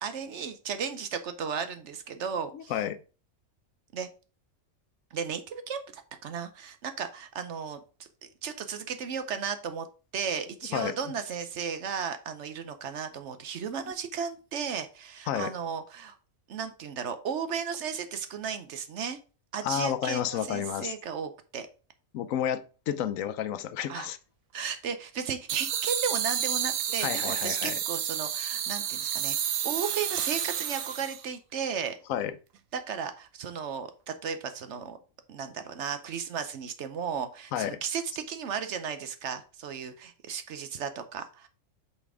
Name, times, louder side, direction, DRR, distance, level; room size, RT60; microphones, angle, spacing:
voice 1, 0.0-2.7 3.9-4.1 5.1-7.8 8.4-9.9 10.1-16.2 16.5-19.2 19.5-21.7 23.9-24.1 24.5-32.0 32.7-35.0 35.3-41.5, right 7 dB, 65° right, 1.0 m, -35 dB
voice 2, 2.5-3.0 10.7-11.0 15.3-15.5 19.6-20.9 22.1-24.2 27.0-27.8 32.1-32.4 37.5-37.8, left 10 dB, 80° left, 1.0 m, -31 dB
sound 1, 25.5-31.3, right 9 dB, 85° right, 1.1 m, -30 dB
5.7 x 4.2 x 4.7 m
omnidirectional pair, 1.4 m